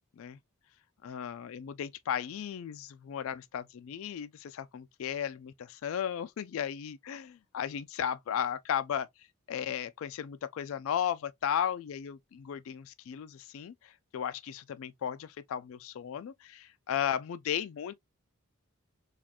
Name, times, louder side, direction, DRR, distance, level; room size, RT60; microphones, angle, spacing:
voice 1, 1.0-9.1 9.5-17.9, left 9 dB, 65° left, 0.3 m, -35 dB
4.1 x 2.4 x 2.7 m
head